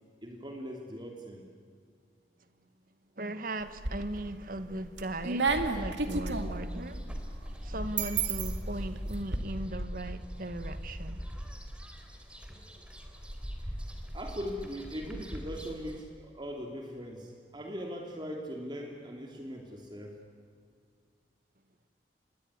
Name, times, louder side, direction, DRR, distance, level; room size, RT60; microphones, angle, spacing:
voice 1, 0.2-1.5 12.5-13.1 13.6-13.8 14.1-20.2, equal, 25° right, 2.7 m, -40 dB
voice 2, 3.2-7.2 7.5-11.2, right 1 dB, 55° right, 1.7 m, -38 dB
sound 1, 3.6-4.3 4.7-9.4, right 4 dB, 85° right, 2.4 m, -33 dB
sound 2, 5.5-16.0, equal, 5° right, 3.4 m, -40 dB
27.5 x 21.5 x 9.7 m
head